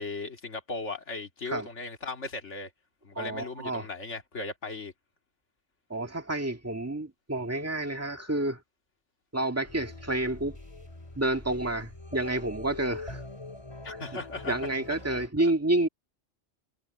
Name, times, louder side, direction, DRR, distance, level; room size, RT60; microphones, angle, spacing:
voice 1, 0.0-2.7 3.0-4.9 13.8-14.5 14.9-15.2, left 3 dB, 85° left, 2.5 m, -37 dB
voice 2, 3.2-3.9 5.9-8.6 9.3-10.6 11.2-13.2 14.5-15.9, right 2 dB, 15° right, 1.8 m, -29 dB
sound 1, 9.6-15.3, left 2 dB, 25° left, 2.8 m, -44 dB
omnidirectional pair, 1.2 m